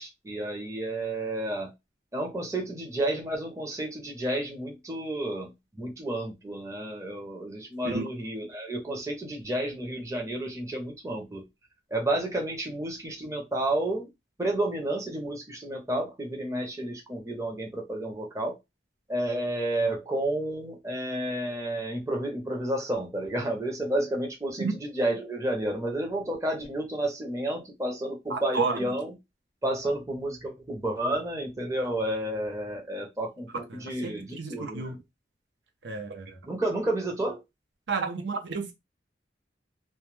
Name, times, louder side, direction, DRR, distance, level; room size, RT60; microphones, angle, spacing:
voice 1, 0.0-1.7 2.1-5.5 5.8-11.4 11.9-14.1 14.4-18.5 19.1-29.1 29.6-35.0 36.5-37.4, right 1 dB, 15° right, 0.5 m, -31 dB
voice 2, 28.3-28.8 33.7-35.0 35.8-36.4 37.9-38.7, right 4 dB, 75° right, 0.6 m, -31 dB
2.2 x 2.1 x 3.0 m
head